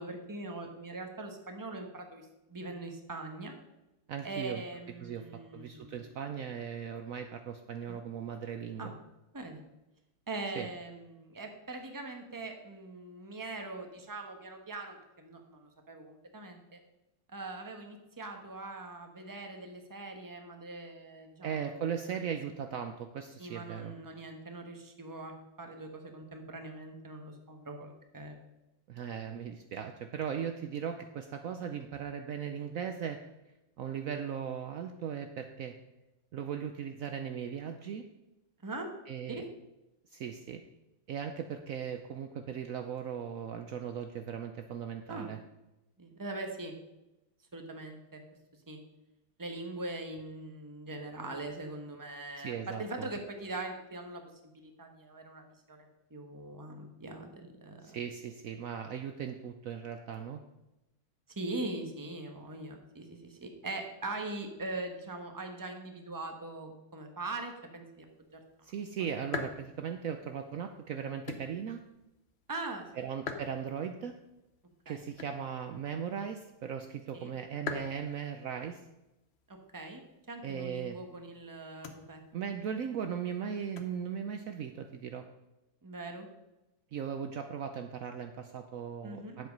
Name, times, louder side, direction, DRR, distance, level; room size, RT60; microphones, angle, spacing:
voice 1, 0.0-3.6 4.2-6.1 7.9-8.0 8.8-8.9 9.3-9.6 10.3-16.8 17.3-21.7 23.4-28.4 38.6-38.9 39.3-39.5 45.1-45.3 46.0-46.7 47.5-48.2 48.7-48.8 49.4-54.2 54.5-58.0 61.3-68.1 68.3-68.7 69.0-69.1 72.5-72.9 74.9-75.0 77.1-77.3 79.5-82.2 85.8-86.3 89.0-89.4, right 2 dB, 15° right, 4 dB, 1.0 m, -42 dB
voice 2, 4.1-4.6 5.0-8.9 10.5-10.7 21.4-23.9 28.9-33.2 33.8-35.7 36.3-38.1 39.1-39.4 40.1-40.6 41.1-45.4 52.4-53.1 57.8-60.4 68.6-71.8 73.0-74.2 74.9-78.9 80.4-81.0 82.3-85.3 86.9-89.5, right 8 dB, 80° right, 6 dB, 0.7 m, -38 dB
sound 1, 68.1-85.1, left 5 dB, 45° left, 0.8 m, -48 dB
10.5 x 7.6 x 5.3 m, 0.96 s
omnidirectional pair, 2.2 m